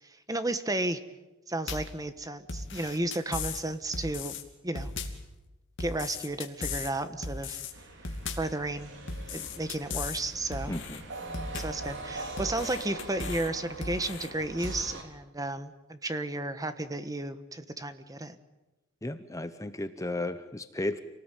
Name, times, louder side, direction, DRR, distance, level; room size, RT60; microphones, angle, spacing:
voice 1, 0.3-1.0 1.5-4.4 4.6-4.9 5.8-7.6 8.3-8.9 9.3-10.7 11.5-18.4, right 2 dB, 15° right, 10 dB, 1.3 m, -33 dB
sound 1, 1.7-2.0 2.5-3.6 3.9-4.4 4.8-5.3 5.8-6.9 7.2-7.7 8.0-8.6 9.1-10.2 10.5-11.0 11.3-11.9 12.4-13.5 13.8-14.3 14.6-14.8, left 4 dB, 60° left, 2.8 m, -37 dB
sound 2, 7.7-15.0, right 2 dB, 60° right, 3.9 m, -42 dB
voice 2, 10.7-11.0 19.0-21.0, left 2 dB, 15° left, 10 dB, 0.9 m, -34 dB
27.5 x 19.0 x 9.2 m, 1.1 s
head